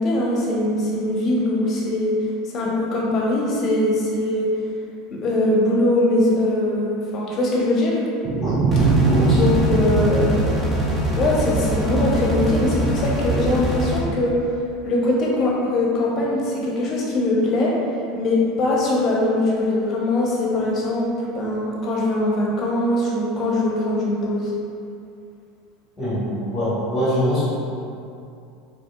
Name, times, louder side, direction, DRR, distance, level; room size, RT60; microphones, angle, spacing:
voice 1, 0.0-2.2 2.5-4.5 5.1-8.0 9.3-10.6 11.1-14.3 14.8-17.7 18.1-24.5, left 1 dB, 45° left, -4 dB, 0.9 m, -21 dB
sound 1, 8.2-11.5, right 3 dB, 35° right, 0.4 m, -21 dB
sound 2, 8.7-14.0, right 1 dB, 10° right, 0.9 m, -23 dB
voice 2, 9.0-9.6 26.0-27.5, equal, 20° left, -10 dB, 1.5 m, -23 dB
4.2 x 3.0 x 2.3 m, 2.6 s
supercardioid pair, 100°, 0 cm